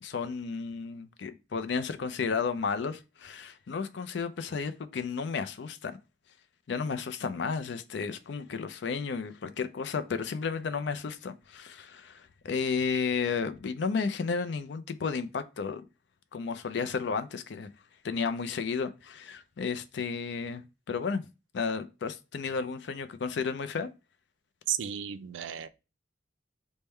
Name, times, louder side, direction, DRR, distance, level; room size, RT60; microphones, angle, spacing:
voice 1, 0.0-6.0 6.7-15.8 16.3-17.7 18.0-20.6 20.9-21.3 21.5-23.9, left 5 dB, 65° left, 0.4 m, -33 dB
voice 2, 24.7-25.7, right 10 dB, 80° right, 0.4 m, -33 dB
3.5 x 2.1 x 4.2 m
head